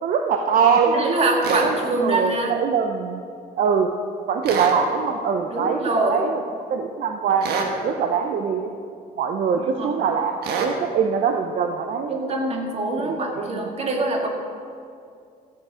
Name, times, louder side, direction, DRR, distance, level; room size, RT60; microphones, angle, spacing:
voice 1, 0.0-1.1 1.6-3.2 3.6-3.9 4.3-6.4 6.7-8.7 9.2-10.3 10.6-12.2 13.0-13.7, right 6 dB, 55° right, 5 dB, 0.8 m, -23 dB
voice 2, 0.8-2.5 5.5-6.2 9.5-10.0 12.1-14.3, right 2 dB, 40° right, 1 dB, 2.0 m, -24 dB
sound 1, 1.4-1.7 4.4-4.8 7.4-7.7 10.4-10.7, right 5 dB, 70° right, 1.5 m, -26 dB
14.5 x 7.6 x 5.0 m, 2.3 s
cardioid pair, 110°, 17 cm